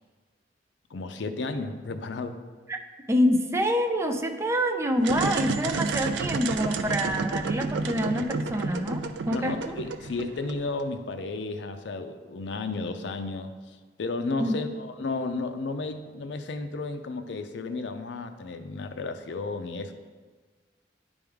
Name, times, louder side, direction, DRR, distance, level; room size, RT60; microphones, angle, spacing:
voice 1, 0.9-2.4 9.3-13.5 14.0-19.9, left 3 dB, 75° left, 8 dB, 0.5 m, -33 dB
voice 2, 3.1-9.8 14.4-14.6, equal, 15° right, 5 dB, 0.4 m, -26 dB
sound 1, 5.0-10.8, right 4 dB, 80° right, 0.4 m, -30 dB
10.5 x 3.5 x 3.5 m, 1.4 s
head